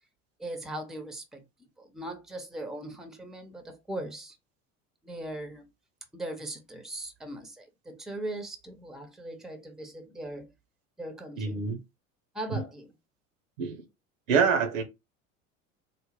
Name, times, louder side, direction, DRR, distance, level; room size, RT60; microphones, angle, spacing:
voice 1, 0.4-1.4 1.8-4.4 5.0-5.7 6.1-10.5 11.0-11.6 12.3-13.0, right 1 dB, ahead, 0.7 m, -39 dB
voice 2, 11.4-11.8 12.5-12.6 13.6-13.8 14.3-14.8, right 6 dB, 75° right, 0.9 m, -25 dB
3.8 x 2.0 x 3.2 m
hypercardioid pair, 70°, 40 cm